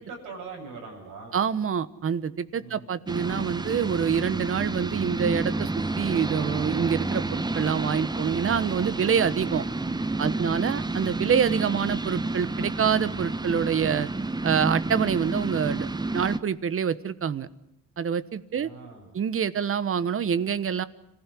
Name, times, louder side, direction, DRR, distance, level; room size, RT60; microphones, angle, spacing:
voice 1, 0.0-1.4 2.6-2.9 10.1-10.8 18.5-19.1, right 4 dB, 90° right, -1 dB, 7.7 m, -42 dB
voice 2, 1.3-5.7 6.0-9.6 10.2-14.1 14.4-15.9 16.1-17.5 18.0-18.7 19.1-20.9, right 7 dB, 45° right, 16 dB, 1.2 m, -26 dB
sound 1, 3.1-16.4, right 2 dB, 15° right, 1.0 m, -30 dB
26.0 x 15.5 x 9.9 m, 0.84 s
cardioid pair, 90°, 30 cm